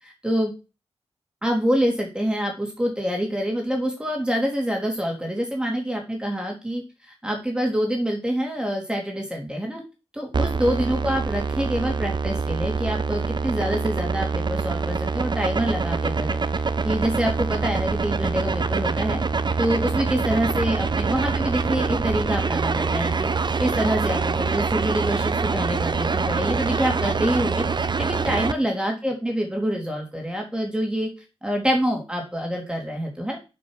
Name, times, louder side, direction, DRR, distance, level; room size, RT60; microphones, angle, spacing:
voice 1, 1.4-9.8 10.1-16.4 16.8-19.2 19.6-23.3 23.6-31.1 31.4-33.4, equal, 10° right, 1 dB, 2.8 m, -26 dB
sound 1, 10.3-28.5, right 4 dB, 45° right, 0.7 m, -25 dB
7.2 x 5.6 x 6.4 m, 0.30 s
wide cardioid pair, 75°, 11 cm